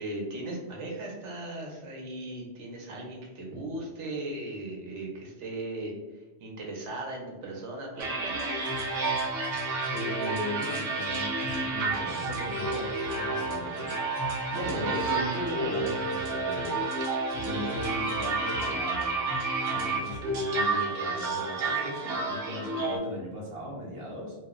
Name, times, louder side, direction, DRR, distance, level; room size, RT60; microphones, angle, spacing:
voice 1, 0.0-8.5 14.8-14.9, right 1 dB, 85° right, -1 dB, 1.1 m, -38 dB
sound 1, 8.0-23.0, right 3 dB, 70° right, 0.8 m, -30 dB
voice 2, 9.9-13.9 14.5-16.8 17.3-19.1 19.6-24.3, equal, 30° right, -4 dB, 0.8 m, -37 dB
2.5 x 2.1 x 3.6 m, 1.2 s
omnidirectional pair, 1.2 m